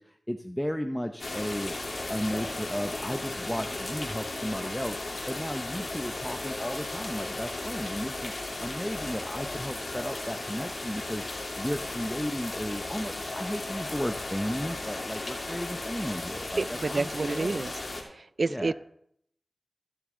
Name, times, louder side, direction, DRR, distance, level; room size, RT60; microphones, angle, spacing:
voice 1, 0.0-1.7 2.1-17.6 18.5-18.7, equal, 5° left, 5 dB, 0.8 m, -34 dB
sound 1, 1.2-18.0, left 2 dB, 65° left, 2.8 m, -35 dB
voice 2, 16.6-17.7 18.0-18.7, right 3 dB, 65° right, 17 dB, 0.4 m, -29 dB
16.0 x 6.8 x 3.8 m, 0.70 s
cardioid pair, 40°, 0 cm